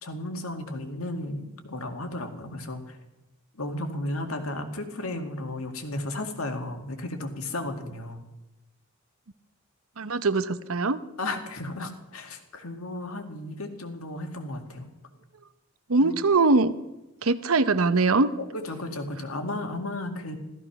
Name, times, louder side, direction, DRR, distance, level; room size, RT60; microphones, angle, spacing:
voice 1, 0.0-3.0 3.5-8.2 11.2-14.9 16.0-16.1 18.4-20.4, left 2 dB, 90° left, 5 dB, 2.1 m, -34 dB
voice 2, 10.0-11.0 15.9-16.7 17.2-18.3, right 3 dB, 80° right, 13 dB, 0.8 m, -22 dB
15.0 x 14.0 x 5.9 m, 0.99 s
head